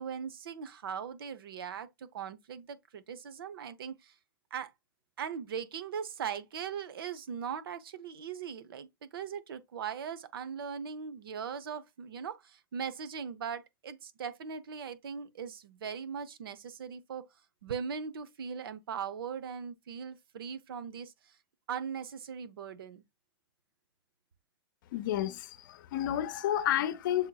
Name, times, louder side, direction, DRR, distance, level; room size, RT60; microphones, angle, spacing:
voice 1, 0.0-4.1 4.5-4.7 5.2-17.3 17.6-21.4 21.7-23.0, right 7 dB, 70° right, 0.7 m, -39 dB
voice 2, 24.9-27.3, left 12 dB, 60° left, 0.7 m, -31 dB
7.1 x 2.7 x 2.3 m
hypercardioid pair, 110°, 12 cm